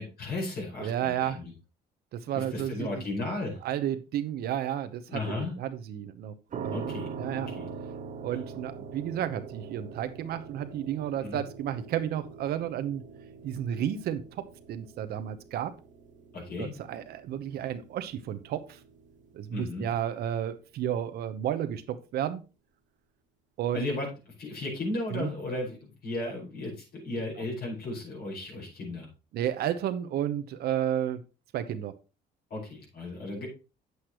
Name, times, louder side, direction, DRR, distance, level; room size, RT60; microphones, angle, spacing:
voice 1, 0.0-1.5 2.3-3.6 5.1-5.6 6.7-7.1 7.5-7.6 11.2-11.4 16.3-16.7 19.5-19.9 23.7-24.1 24.4-25.8 26.0-29.1 32.5-33.5, left 2 dB, 65° left, -2 dB, 5.1 m, -35 dB
voice 2, 0.8-1.4 2.1-3.0 3.6-6.3 6.6-6.9 7.2-7.5 8.2-13.0 13.4-15.7 16.6-18.8 19.3-22.4 23.6-23.9 25.1-25.3 26.2-26.3 29.3-31.2 31.5-31.9, right 10 dB, 70° right, 10 dB, 0.9 m, -32 dB
sound 1, 6.5-21.4, right 5 dB, 50° right, 1.3 m, -44 dB
8.5 x 8.0 x 3.0 m, 0.31 s
cardioid pair, 110°, 17 cm